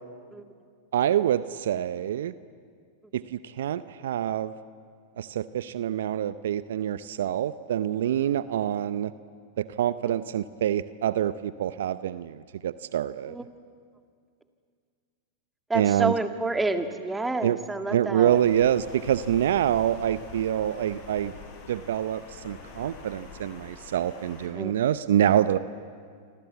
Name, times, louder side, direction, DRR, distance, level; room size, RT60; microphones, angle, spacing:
voice 1, 0.9-2.3 3.1-4.5 5.2-9.1 9.6-13.4 15.7-16.1 17.4-17.6 17.9-21.3 21.7-25.6, right 10 dB, 70° right, 15 dB, 0.7 m, -26 dB
voice 2, 15.7-18.4 24.5-24.7, right 2 dB, 10° right, 6 dB, 2.2 m, -29 dB
Water, 18.3-24.5, left 5 dB, 55° left, 6.9 m, -45 dB
27.5 x 26.0 x 8.3 m, 2.1 s
hypercardioid pair, 100°, 0 cm